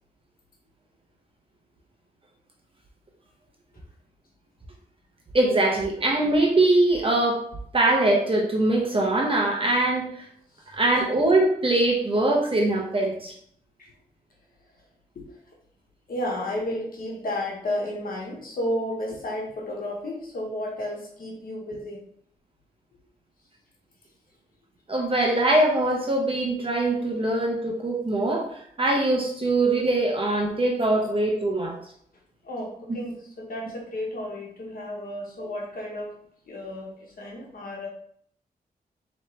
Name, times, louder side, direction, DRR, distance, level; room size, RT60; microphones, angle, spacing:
voice 1, 5.3-7.4 7.7-10.2 10.7-13.3 24.9-31.7 35.4-35.5, right 2 dB, 35° right, -1 dB, 0.9 m, -22 dB
voice 2, 16.1-22.0 32.4-36.2 36.4-37.9, left 1 dB, 65° left, -2 dB, 1.2 m, -32 dB
4.4 x 3.2 x 3.2 m, 0.65 s
cardioid pair, 80°, 16 cm